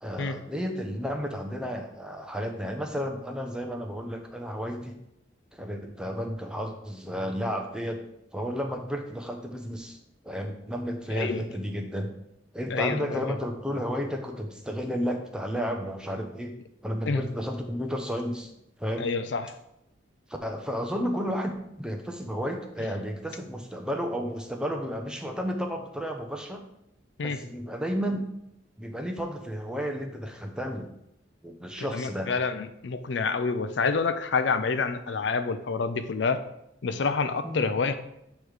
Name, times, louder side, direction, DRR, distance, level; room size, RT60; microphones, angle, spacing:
voice 1, 0.0-5.0 5.5-8.0 8.3-10.0 10.2-12.1 12.5-16.5 16.8-18.5 18.8-19.1 20.4-26.6 27.2-28.3 28.8-30.9 31.4-32.3 37.4-37.7, equal, 5° right, 4 dB, 0.6 m, -32 dB
voice 2, 11.1-11.4 12.7-13.4 17.1-17.2 19.0-19.5 27.2-27.4 31.9-36.4 36.8-37.9, left 4 dB, 65° left, 9 dB, 0.5 m, -28 dB
8.4 x 3.1 x 4.8 m, 0.80 s
head